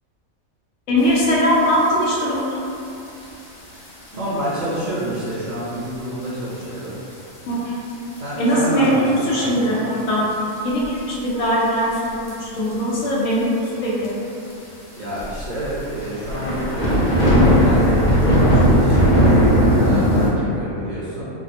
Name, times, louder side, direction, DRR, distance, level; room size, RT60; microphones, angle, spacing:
voice 1, 0.9-2.6 7.5-7.8 8.4-10.3 10.6-14.2, equal, 75° left, -5 dB, 1.0 m, -20 dB
sound 1, 1.6-1.7 2.0-2.4 3.1-3.2 3.9-4.0 4.6-4.7 5.0-5.1 5.3-5.4 6.5-6.8 7.2-7.3 8.2-8.3 8.8-9.3 9.6-9.8 10.3-11.0 12.0-12.3 12.6-12.7 13.0-13.1 13.3-13.4 14.0-14.1 14.5-14.6 15.2-20.3, equal, 55° left, 0.5 m, -17 dB
voice 2, 4.1-7.0 8.2-9.0 9.3-9.6 14.9-21.3, right 1 dB, 70° right, -12 dB, 1.2 m, -29 dB
3.5 x 2.0 x 2.7 m, 2.7 s
omnidirectional pair, 1.4 m